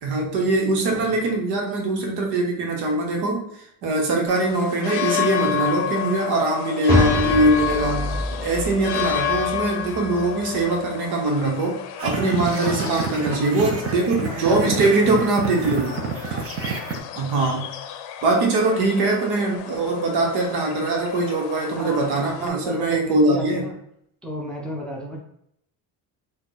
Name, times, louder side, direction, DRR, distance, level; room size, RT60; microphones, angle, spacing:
voice 1, 0.0-3.5 3.8-15.9 17.2-17.7 18.2-23.7, right 2 dB, 65° right, 0 dB, 1.3 m, -22 dB
voice 2, 0.8-1.3 12.6-13.7 14.2-15.8 21.7-23.7 24.2-25.2, equal, ahead, -3 dB, 0.6 m, -33 dB
sound 1, 4.3-22.5, left 11 dB, 85° left, 0.6 m, -31 dB
sound 2, 6.9-10.8, equal, 15° right, 1.2 m, -27 dB
sound 3, 12.0-17.0, right 5 dB, 35° right, 0.7 m, -29 dB
4.4 x 2.5 x 3.9 m, 0.73 s
cardioid pair, 150°, 41 cm